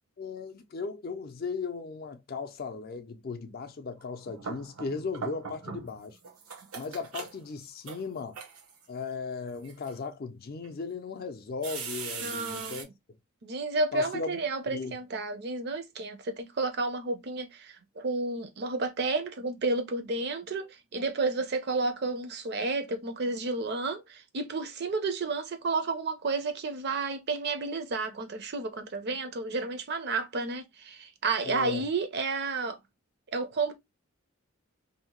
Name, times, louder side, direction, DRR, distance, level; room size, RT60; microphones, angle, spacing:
voice 1, 0.2-6.2 6.7-8.4 8.9-12.9 13.9-14.4 14.7-14.9 31.4-31.9, left 4 dB, 45° left, 0.4 m, -37 dB
sound 1, 4.1-6.0 6.2-8.8 9.5-9.9 10.6-10.7 11.6-12.8, right 5 dB, 90° right, 0.8 m, -40 dB
voice 2, 12.2-12.8 13.4-32.8 33.3-33.7, right 3 dB, 50° right, 0.5 m, -31 dB
2.7 x 2.1 x 2.9 m
head